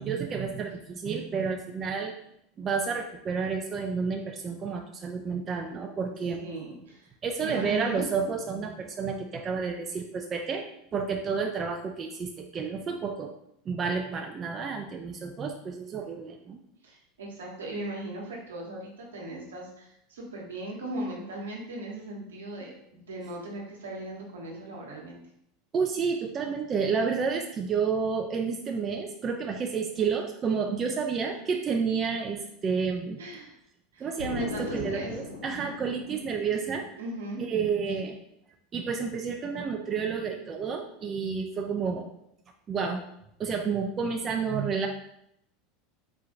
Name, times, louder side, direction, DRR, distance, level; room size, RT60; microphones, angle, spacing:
voice 1, 0.0-2.1 2.6-6.4 7.2-10.6 10.9-13.3 13.7-16.6 25.7-33.2 34.0-36.8 37.4-38.2 38.7-42.1 42.7-43.0 43.4-44.9, right 5 dB, 35° right, 3 dB, 0.5 m, -30 dB
voice 2, 6.4-7.1 7.4-8.0 16.8-25.2 33.2-33.5 33.9-34.1 34.4-35.3 37.0-37.4, right 2 dB, 80° right, -2 dB, 1.1 m, -38 dB
Explosion, 34.2-36.9, left 3 dB, 80° left, 0.6 m, -38 dB
4.4 x 2.4 x 3.8 m, 0.76 s
hypercardioid pair, 85°, 0 cm